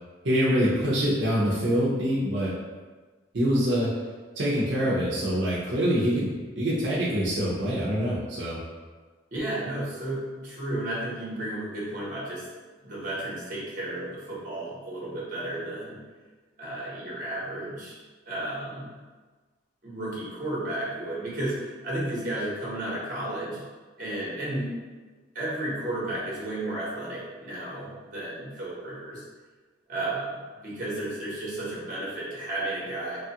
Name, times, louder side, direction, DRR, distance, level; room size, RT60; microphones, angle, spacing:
voice 1, 0.2-2.5 3.3-3.9 4.4-8.6, equal, 75° right, -8 dB, 0.6 m, -25 dB
voice 2, 9.3-12.5 12.8-16.0 16.6-17.9 18.3-19.0 19.8-23.6 24.0-24.7 25.3-29.2 29.9-33.2, right 1 dB, 45° right, -7 dB, 1.0 m, -33 dB
3.1 x 2.3 x 2.9 m, 1.4 s
head